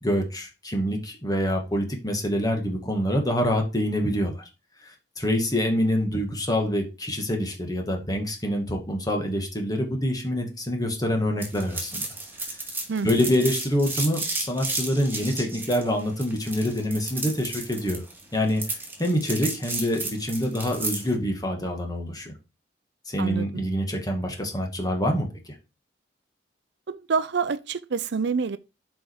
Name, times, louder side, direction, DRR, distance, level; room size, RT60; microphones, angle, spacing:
voice 1, 0.0-4.4 4.8-12.0 13.0-18.0 18.3-22.3 23.1-25.6, equal, 20° left, 2.1 m, -26 dB
sound 1, 11.4-21.1, right 2 dB, 10° right, 2.5 m, -33 dB
voice 2, 12.9-13.3 23.2-23.6 26.9-28.6, right 5 dB, 65° right, 0.5 m, -27 dB
7.7 x 5.0 x 4.8 m
head